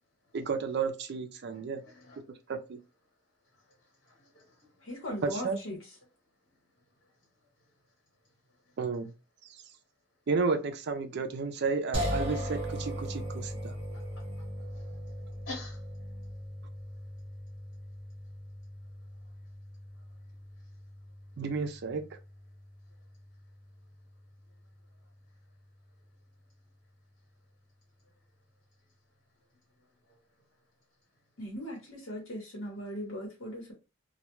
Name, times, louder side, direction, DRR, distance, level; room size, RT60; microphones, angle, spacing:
voice 1, 0.3-1.8 2.5-2.8 5.2-5.6 8.8-9.1 9.4-9.6 10.3-13.8 21.4-22.1, right 4 dB, 55° right, 0.4 m, -32 dB
voice 2, 1.8-2.2 3.4-5.0 6.8-7.1 8.6-8.8 13.9-15.1 15.4-15.9 19.1-19.2 19.9-20.2 28.0-28.1 29.8-30.2, left 3 dB, 65° left, 1.2 m, -50 dB
voice 3, 4.8-5.8 31.4-33.7, equal, 90° left, 1.0 m, -39 dB
sound 1, 11.9-25.0, equal, 30° right, 0.9 m, -39 dB
2.2 x 2.2 x 2.9 m
head